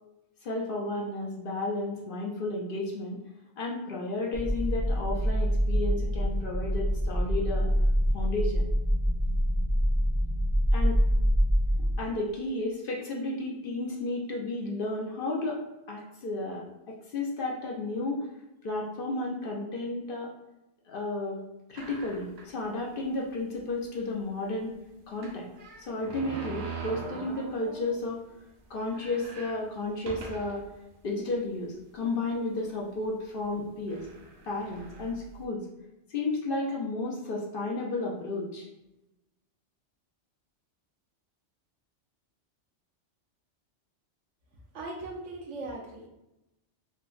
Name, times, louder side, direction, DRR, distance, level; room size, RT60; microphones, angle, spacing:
voice 1, 0.4-3.2 3.6-7.7 8.1-8.7 10.7-10.9 12.0-15.6 15.9-18.2 18.6-20.3 20.9-21.4 21.7-24.8 25.1-25.5 25.8-28.2 28.7-30.6 31.0-34.1 34.4-35.6 36.1-38.7, left 2 dB, 55° left, -1 dB, 0.7 m, -32 dB
sound 1, 4.3-12.0, equal, 25° left, 0.5 m, -25 dB
sound 2, 21.7-22.6 23.2-23.3 23.5-23.6 25.2-28.1 28.5-28.6 28.8-30.7 31.3-31.4 32.3-32.6 33.4-33.5 33.9-35.4, right 4 dB, 65° right, 0.8 m, -42 dB
voice 2, 44.7-46.1, right 2 dB, 85° right, 0 dB, 1.0 m, -39 dB
4.3 x 2.1 x 2.4 m, 0.91 s
omnidirectional pair, 1.2 m